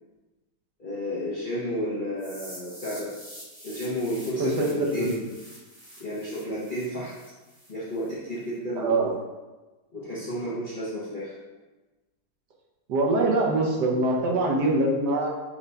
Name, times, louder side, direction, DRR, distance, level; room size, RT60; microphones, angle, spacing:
voice 1, 0.8-3.1 3.6-5.3 6.0-7.1 7.7-9.2 9.9-11.3, equal, 40° left, -10 dB, 0.8 m, -32 dB
sound 1, 2.2-8.1, equal, 20° right, 1.0 m, -46 dB
voice 2, 4.4-5.1 8.8-9.1 12.9-15.3, right 2 dB, 80° right, -1 dB, 1.4 m, -23 dB
5.8 x 2.2 x 3.9 m, 1.2 s
omnidirectional pair, 1.8 m